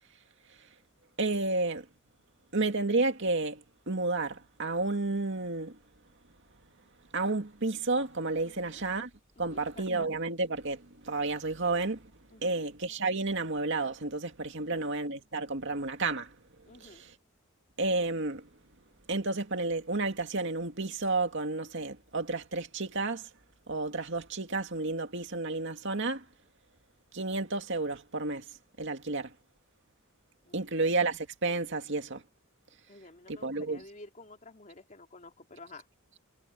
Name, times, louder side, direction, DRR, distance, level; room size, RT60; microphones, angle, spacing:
voice 1, 1.2-1.9 2.5-5.8 7.1-9.1 9.4-12.1 12.4-16.4 16.8-17.1 17.8-18.5 19.1-23.3 23.7-26.2 27.1-28.5 28.8-29.3 30.5-32.2 33.3-33.8, right 3 dB, 60° right, 2.3 m, -31 dB
voice 2, 8.5-8.8 9.4-10.0 12.3-12.6 14.6-14.9 16.7-17.0 30.4-30.7 32.9-35.9, left 2 dB, 35° left, 3.3 m, -51 dB
head